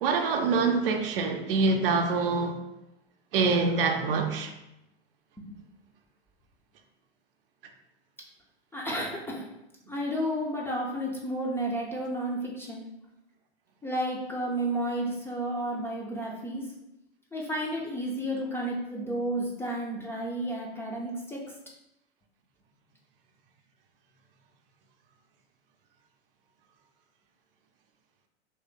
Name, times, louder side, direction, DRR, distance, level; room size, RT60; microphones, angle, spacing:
voice 1, 0.0-2.6 3.3-4.5, right 4 dB, 60° right, 0.6 m, -25 dB
voice 2, 8.7-9.5 9.9-12.8 13.8-16.6 17.3-21.4, right 1 dB, 5° left, 0.4 m, -32 dB
3.1 x 2.8 x 3.6 m
figure-of-eight pair, 95°, 32 cm